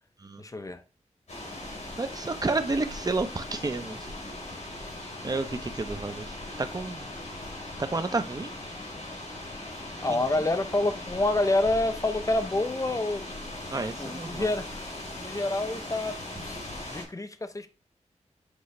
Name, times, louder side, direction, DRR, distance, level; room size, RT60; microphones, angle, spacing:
voice 1, 0.4-0.8 10.0-13.3 14.0-14.8 15.2-16.6 16.9-17.7, left 2 dB, 25° left, 0.7 m, -28 dB
sound 1, 1.3-17.0, left 1 dB, 70° left, 4.3 m, -39 dB
voice 2, 2.0-4.1 5.2-7.1 7.8-8.5 10.1-10.2 13.7-14.5, right 3 dB, 30° right, 0.8 m, -31 dB
8.2 x 4.7 x 3.2 m
wide cardioid pair, 110°, 12 cm